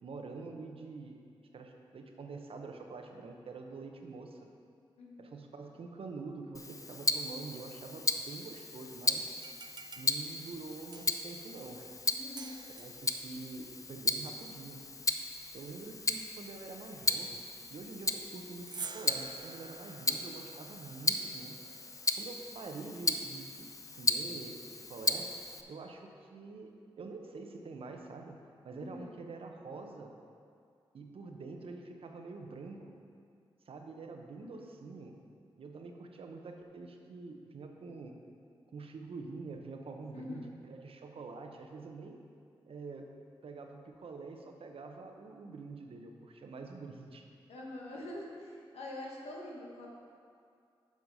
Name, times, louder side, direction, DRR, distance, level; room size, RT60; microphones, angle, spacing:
voice 1, 0.0-1.2 1.5-4.4 5.2-9.3 10.0-12.2 12.7-14.8 15.5-17.4 17.7-21.6 22.1-24.6 24.9-25.3 25.7-28.4 28.6-30.1 30.9-32.9 33.7-35.2 35.6-38.1 38.7-42.2 42.7-43.1 43.4-47.3, right 3 dB, 65° right, 3 dB, 0.9 m, -46 dB
voice 2, 5.0-5.3 12.1-12.6 28.8-29.2 34.4-34.8 40.1-40.5 47.5-49.9, left 1 dB, 90° left, -2 dB, 1.3 m, -45 dB
Tick-tock, 6.5-25.6, left 3 dB, 35° left, 0.5 m, -36 dB
sound 1, 9.3-11.4 12.4-13.1 18.5-22.1, right 5 dB, 45° right, 0.4 m, -49 dB
7.2 x 5.9 x 5.4 m, 2.3 s
cardioid pair, 50°, 10 cm